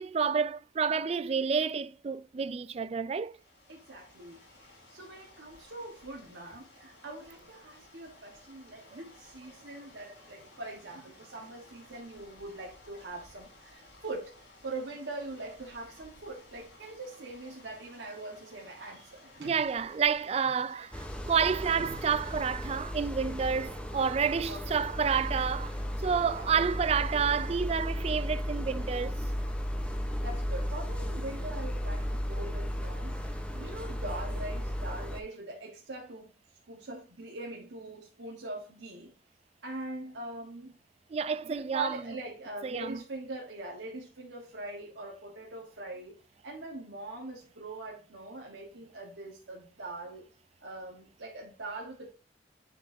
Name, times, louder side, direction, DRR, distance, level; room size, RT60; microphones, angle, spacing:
voice 1, 0.0-3.3 19.4-25.7 26.0-29.2 41.1-41.9 42.6-43.0, right 6 dB, 35° right, 0.3 m, -29 dB
sound 1, 3.2-22.8, left 2 dB, 70° left, 4.0 m, -56 dB
voice 2, 3.7-19.7 21.8-22.4 24.5-24.7 26.3-26.5 30.2-33.2 33.5-36.3 36.7-39.1 39.6-40.7 41.4-46.2 46.4-50.3 50.6-52.1, right 2 dB, 90° right, 1.4 m, -42 dB
sound 2, 20.9-35.2, equal, 5° left, 0.8 m, -35 dB
10.0 x 4.6 x 2.7 m
head